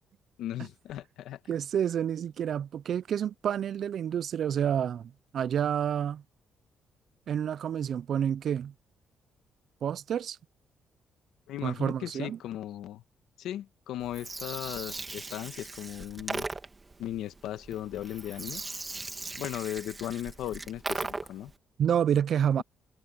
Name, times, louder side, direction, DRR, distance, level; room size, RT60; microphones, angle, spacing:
voice 1, 0.4-1.4 11.5-13.0 13.4-16.5 17.0-18.6 19.4-21.5, left 12 dB, 85° left, 1.3 m, -37 dB
voice 2, 1.5-6.2 7.3-8.7 9.8-10.4 11.6-12.4 21.8-22.6, right 9 dB, 60° right, 0.4 m, -29 dB
Gurgling, 14.0-21.5, right 3 dB, 25° right, 2.3 m, -39 dB
cardioid pair, 90°, 0 cm